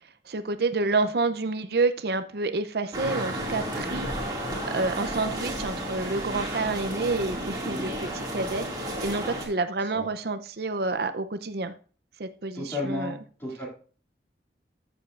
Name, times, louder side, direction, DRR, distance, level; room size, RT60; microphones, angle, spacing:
voice 1, 0.3-4.4 4.7-11.7 12.2-13.2, right 3 dB, 60° right, 0.6 m, -29 dB
sound 1, 2.9-9.5, equal, 25° right, 2.2 m, -32 dB
voice 2, 12.5-13.7, left 2 dB, 15° left, 2.4 m, -33 dB
14.0 x 7.0 x 2.5 m
head